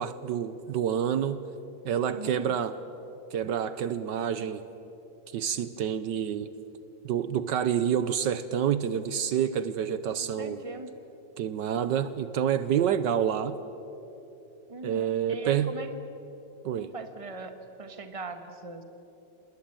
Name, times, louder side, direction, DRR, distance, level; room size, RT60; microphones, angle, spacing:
voice 1, 0.0-1.4 1.8-2.8 3.3-4.6 5.3-6.5 7.0-10.6 11.4-13.6 14.8-15.7 16.6-16.9, right 9 dB, 70° right, 13 dB, 1.4 m, -28 dB
voice 2, 2.1-2.6 10.4-10.9 14.7-16.0 16.8-18.8, right 3 dB, 20° right, 8 dB, 1.5 m, -40 dB
27.5 x 20.0 x 8.9 m, 3.0 s
omnidirectional pair, 2.0 m